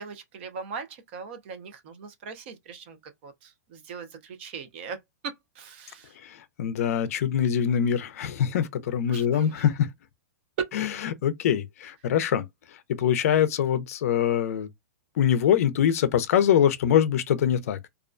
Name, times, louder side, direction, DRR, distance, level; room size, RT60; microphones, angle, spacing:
voice 1, 0.0-5.0 5.2-6.2 9.1-9.7, right 5 dB, 40° right, 0.5 m, -41 dB
voice 2, 6.2-9.9 10.7-10.9 11.2-14.7 15.2-17.8, left 9 dB, 60° left, 0.4 m, -24 dB
2.4 x 2.1 x 2.4 m
supercardioid pair, 165°, 9 cm